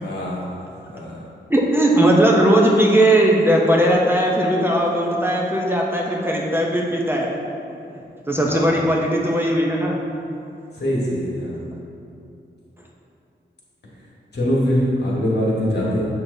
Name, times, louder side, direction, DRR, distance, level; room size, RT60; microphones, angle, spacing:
voice 1, 0.0-0.5 0.9-1.2 8.4-8.7 10.8-11.6 14.3-16.1, equal, 65° left, -5 dB, 1.5 m, -23 dB
voice 2, 1.5-7.3 8.3-10.0, right 1 dB, 10° right, -2 dB, 0.6 m, -18 dB
7.4 x 5.8 x 2.7 m, 2.7 s
wide cardioid pair, 140°, 18 cm